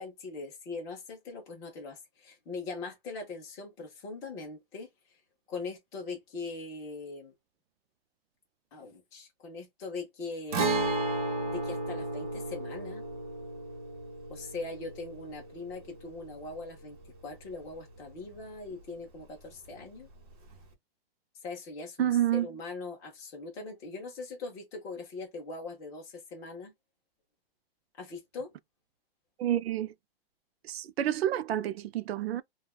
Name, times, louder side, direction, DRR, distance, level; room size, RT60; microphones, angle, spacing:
voice 1, 0.0-4.9 5.5-7.3 8.7-10.7 11.5-13.0 14.3-17.0 17.2-20.1 21.4-26.7 28.0-28.5, left 3 dB, 10° left, 0.6 m, -41 dB
Guitar, 10.5-18.1 18.4-18.5 20.5-20.6, right 2 dB, 40° right, 1.0 m, -34 dB
voice 2, 22.0-22.5 29.4-29.9 30.6-32.4, right 11 dB, 90° right, 0.5 m, -29 dB
3.2 x 2.3 x 2.3 m
hypercardioid pair, 175°, 30 cm